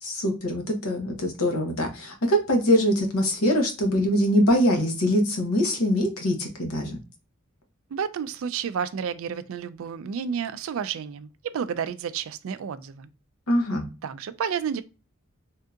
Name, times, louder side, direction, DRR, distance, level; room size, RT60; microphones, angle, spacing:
voice 1, 0.0-7.0 13.5-13.9, equal, 85° left, 1.0 m, -23 dB
voice 2, 7.9-13.1 14.0-14.8, right 7 dB, 70° right, 0.3 m, -31 dB
3.6 x 2.6 x 2.3 m
head